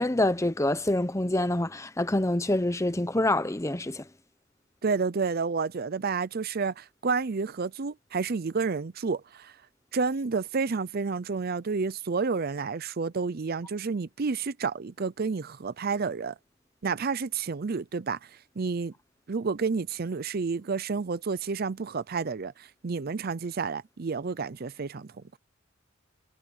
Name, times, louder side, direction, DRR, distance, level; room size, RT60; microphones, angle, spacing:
voice 1, 0.0-4.0, left 1 dB, 15° left, 0.9 m, -26 dB
voice 2, 4.8-9.5 9.9-16.3 16.8-18.3 18.6-18.9 19.3-25.1, right 4 dB, 50° right, 0.5 m, -30 dB
head